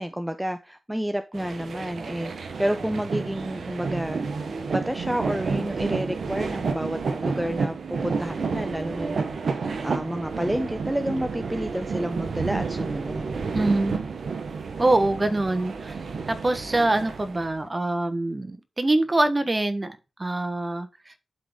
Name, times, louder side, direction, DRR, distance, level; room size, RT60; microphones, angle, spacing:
voice 1, 0.0-13.3, equal, 10° right, 0.7 m, -30 dB
sound 1, 1.3-17.6, right 4 dB, 75° right, 1.0 m, -30 dB
voice 2, 13.5-14.0 14.8-16.0 16.3-21.2, right 2 dB, 30° right, 1.3 m, -24 dB
11.5 x 3.9 x 3.6 m
cardioid pair, 50°, 0 cm